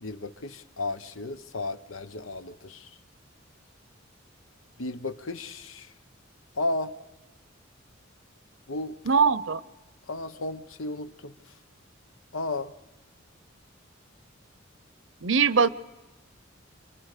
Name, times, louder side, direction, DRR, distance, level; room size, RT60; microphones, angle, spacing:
voice 1, 0.0-2.9 4.8-5.9 6.5-6.9 8.7-9.0 10.1-11.3 12.3-12.7, left 2 dB, 85° left, 11 dB, 1.1 m, -33 dB
voice 2, 9.1-9.6 15.2-15.7, right 5 dB, 65° right, 16 dB, 0.8 m, -21 dB
28.0 x 25.0 x 6.8 m, 1.1 s
head